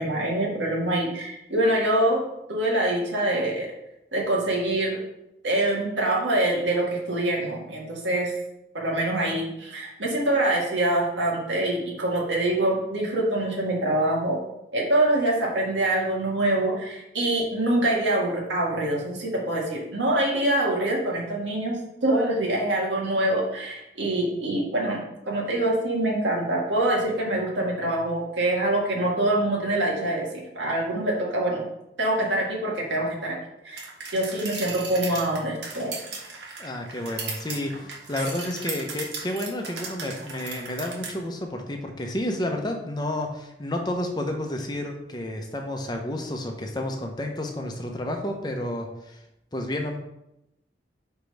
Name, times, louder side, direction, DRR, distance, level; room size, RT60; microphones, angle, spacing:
voice 1, 0.0-2.2 2.5-3.7 4.1-5.0 5.4-8.3 8.7-14.4 14.7-31.6 32.0-33.4 33.6-35.9, right 1 dB, 85° right, -2 dB, 1.8 m, -25 dB
sound 1, 33.8-41.1, right 4 dB, 70° right, 1.2 m, -37 dB
voice 2, 36.6-49.2 49.5-50.0, left 1 dB, 20° left, 3 dB, 0.7 m, -31 dB
5.1 x 4.5 x 5.2 m, 0.86 s
head